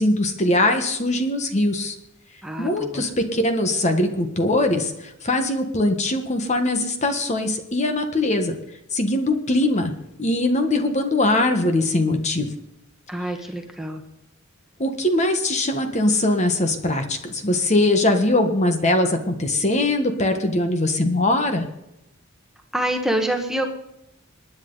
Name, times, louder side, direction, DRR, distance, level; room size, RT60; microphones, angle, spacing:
voice 1, 0.0-1.9 2.6-8.5 8.9-9.9 10.2-12.5 14.8-21.7, left 1 dB, 35° left, 6 dB, 1.4 m, -21 dB
voice 2, 2.4-3.1 13.1-14.0 22.7-23.7, right 1 dB, ahead, 3 dB, 1.4 m, -26 dB
27.0 x 10.0 x 4.0 m, 0.86 s
head